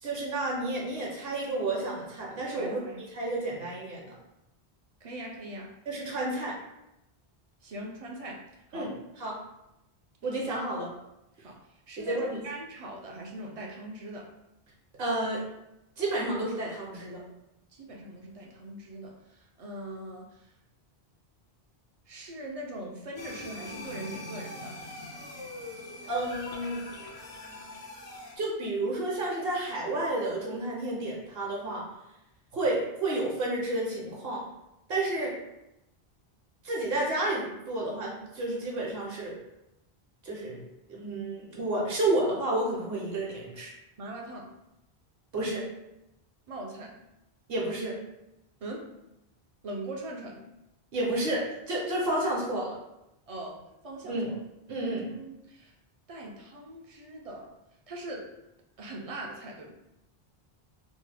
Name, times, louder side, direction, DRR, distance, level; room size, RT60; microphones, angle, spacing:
voice 1, 0.0-2.8 3.1-4.1 5.9-6.6 8.7-8.9 9.2-9.4 10.2-10.9 12.0-12.4 15.0-15.4 16.0-17.2 26.1-26.8 28.4-31.9 32.5-34.4 34.9-35.3 36.6-39.4 40.2-40.6 40.9-43.7 45.3-45.6 47.5-48.0 50.9-52.7 54.0-54.3 54.7-55.1, right 2 dB, 70° right, -3 dB, 1.0 m, -31 dB
voice 2, 2.6-3.0 5.0-5.7 7.6-8.4 8.7-8.9 11.4-11.6 11.9-14.3 17.7-20.4 22.1-24.8 44.0-44.5 46.5-46.9 48.6-48.9 49.6-50.4 53.3-54.4 54.7-55.7 56.1-57.5 57.9-58.3 58.8-59.7, right 1 dB, 50° right, -1 dB, 0.4 m, -41 dB
sound 1, 23.2-28.4, left 2 dB, 90° left, 0.9 m, -42 dB
3.1 x 2.0 x 3.2 m, 0.87 s
omnidirectional pair, 1.0 m